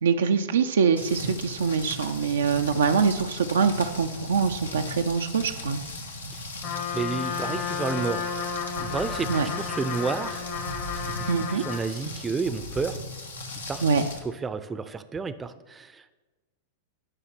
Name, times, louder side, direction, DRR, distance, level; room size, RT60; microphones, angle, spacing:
voice 1, 0.0-5.8 9.3-9.5 11.3-11.6 13.8-14.0, right 5 dB, 70° right, 5 dB, 0.5 m, -24 dB
Rain, 1.0-14.2, left 1 dB, 80° left, 1.4 m, -37 dB
Trumpet, 6.6-11.9, left 6 dB, 50° left, 1.4 m, -32 dB
voice 2, 6.9-8.3 8.8-10.5 11.0-13.0 13.7-13.9 14.2-16.2, right 4 dB, 15° right, 12 dB, 0.6 m, -31 dB
10.0 x 5.6 x 6.0 m, 1.2 s
figure-of-eight pair, 95°, 0 cm